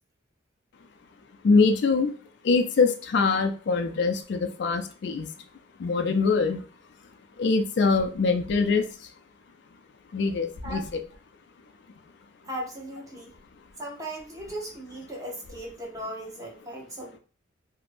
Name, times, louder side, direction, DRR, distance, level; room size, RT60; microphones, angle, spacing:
voice 1, 1.4-2.1 2.4-5.3 5.8-6.6 7.4-9.1 10.1-10.8, left 4 dB, 60° left, 5 dB, 0.3 m, -23 dB
voice 2, 12.4-13.3 13.8-17.2, right 1 dB, 15° right, -2 dB, 0.7 m, -37 dB
2.5 x 2.1 x 3.2 m, 0.38 s
head